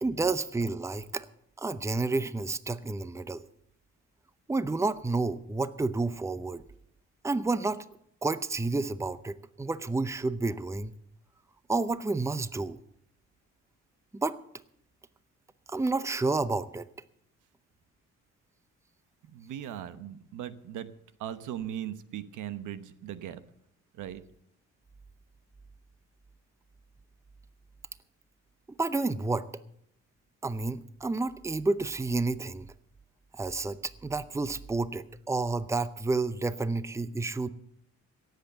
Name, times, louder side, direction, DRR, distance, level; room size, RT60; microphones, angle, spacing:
voice 1, 0.0-1.3 1.6-3.4 4.5-6.6 7.2-7.8 8.2-10.9 11.7-12.8 14.1-14.4 15.7-16.9 28.8-29.5 30.4-32.7 33.4-37.5, right 3 dB, 10° right, 15 dB, 0.7 m, -30 dB
voice 2, 19.3-20.9 21.2-23.4 24.0-24.2, right 10 dB, 85° right, 13 dB, 1.0 m, -38 dB
17.5 x 8.1 x 6.8 m, 0.73 s
cardioid pair, 90°, 30 cm